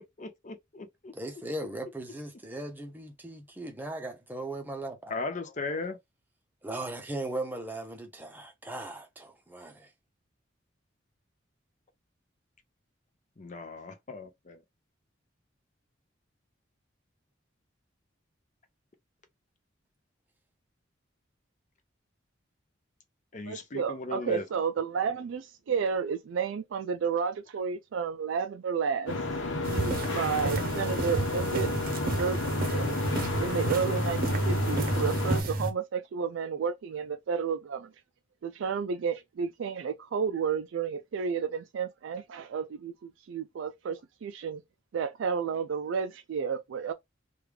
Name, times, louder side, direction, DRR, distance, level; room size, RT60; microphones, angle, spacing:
voice 1, 0.0-1.2 5.1-6.0 13.4-14.6 23.3-24.4, left 3 dB, 40° left, 0.6 m, -37 dB
voice 2, 1.1-5.1 6.6-9.9, right 2 dB, 10° right, 0.7 m, -38 dB
voice 3, 23.4-29.2 29.6-31.7 32.0-32.4 32.7-33.0 33.4-37.9 38.4-44.6 44.9-46.9, right 6 dB, 80° right, 0.3 m, -32 dB
sound 1, 29.1-35.4, left 2 dB, 85° left, 0.9 m, -32 dB
sound 2, 29.6-35.7, right 1 dB, 50° right, 0.7 m, -31 dB
3.2 x 2.4 x 3.2 m
head